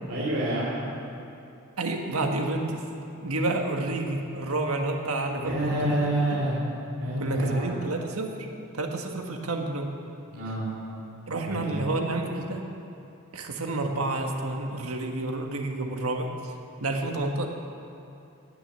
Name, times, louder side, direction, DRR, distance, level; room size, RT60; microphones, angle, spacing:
voice 1, 0.1-0.8 5.4-6.6 7.0-7.7 10.3-10.7 11.5-11.9, right 1 dB, 65° right, -7 dB, 2.7 m, -28 dB
voice 2, 1.8-2.8 3.2-6.0 6.3-6.4 7.2-8.3 8.7-9.9 11.3-12.6 13.3-16.5 16.8-17.5, right 2 dB, 80° right, 3 dB, 1.5 m, -29 dB
17.5 x 6.4 x 8.3 m, 2.7 s
head